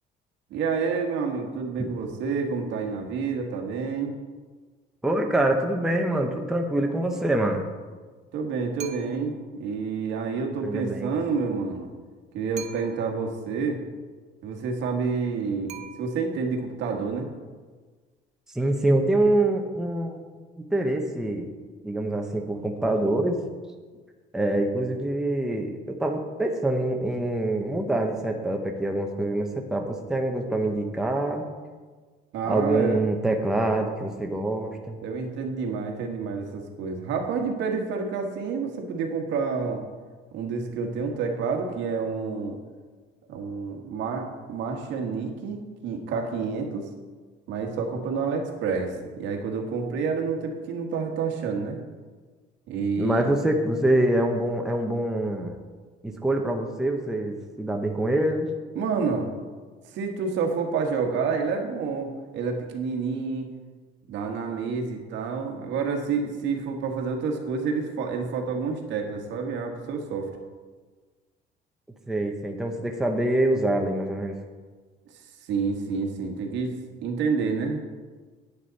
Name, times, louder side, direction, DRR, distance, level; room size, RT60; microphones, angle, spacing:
voice 1, 0.5-4.2 8.3-11.9 12.3-13.8 14.4-17.3 32.3-33.0 35.0-39.8 40.3-42.6 43.3-46.9 47.5-51.8 52.7-53.3 58.7-59.3 59.9-63.5 64.1-70.3 75.5-76.7 77.0-77.8, right 5 dB, 70° right, 2 dB, 1.6 m, -29 dB
voice 2, 5.0-7.6 10.6-11.1 18.5-20.2 20.6-21.5 21.8-23.4 24.3-31.5 32.5-35.0 53.0-55.6 56.0-58.5 72.1-74.3, right 1 dB, 5° right, 2 dB, 0.8 m, -25 dB
sound 1, 8.8-9.4 12.6-13.3 15.7-16.5, right 8 dB, 35° right, 0.9 m, -43 dB
9.7 x 9.5 x 4.1 m, 1.4 s
cardioid pair, 155°, 20 cm